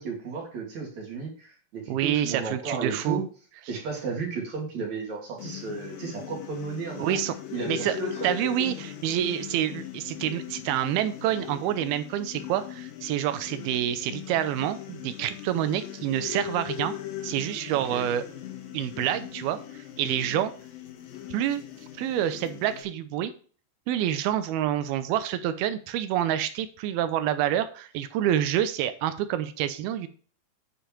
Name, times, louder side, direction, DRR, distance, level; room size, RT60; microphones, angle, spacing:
voice 1, 0.0-3.2 3.7-7.2 7.5-8.3 17.7-18.1, right 4 dB, 50° right, -1 dB, 3.3 m, -34 dB
voice 2, 1.9-3.2 7.0-7.3 7.7-8.0 8.2-17.0 17.2-18.2 18.7-19.6 20.0-20.5 21.3-21.6 22.0-23.3 23.9-30.1, right 11 dB, 80° right, 11 dB, 2.6 m, -27 dB
sound 1, 5.4-22.8, left 11 dB, 70° left, 2.8 m, -39 dB
9.3 x 5.1 x 4.4 m, 0.41 s
omnidirectional pair, 4.4 m